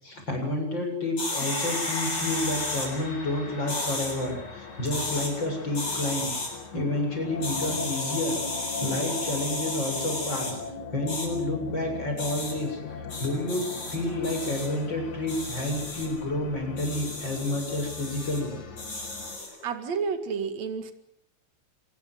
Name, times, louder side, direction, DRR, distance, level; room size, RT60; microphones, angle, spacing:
voice 1, 0.0-6.3 6.7-8.4 8.8-10.6 10.9-18.6 19.4-19.6, left 1 dB, 35° left, 3 dB, 8.0 m, -30 dB
sound 1, 1.2-2.9 3.7-4.1 4.8-5.3 5.7-6.5 7.4-10.5 11.1-11.3 12.2-12.5 13.1-14.0 14.2-14.7 15.3-16.1 16.8-18.4 18.8-19.5, left 2 dB, 60° left, 9.1 m, -33 dB
Gong, 1.3-10.5, left 2 dB, 20° left, 3.1 m, -43 dB
sound 2, 2.1-19.4, left 4 dB, 75° left, 4.3 m, -40 dB
voice 2, 19.6-20.9, right 5 dB, 65° right, 8 dB, 3.3 m, -30 dB
27.0 x 21.0 x 8.0 m, 0.75 s
omnidirectional pair, 3.3 m